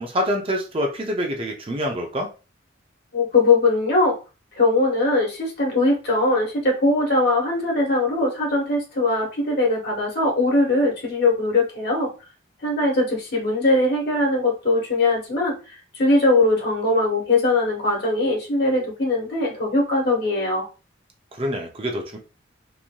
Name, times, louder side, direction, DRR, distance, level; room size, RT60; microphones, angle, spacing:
voice 1, 0.0-2.3 21.3-22.2, equal, 30° right, 1 dB, 0.5 m, -26 dB
voice 2, 3.1-4.2 4.5-12.1 12.6-20.7, left 2 dB, 55° left, -2 dB, 1.3 m, -21 dB
3.0 x 2.6 x 2.2 m, 0.32 s
head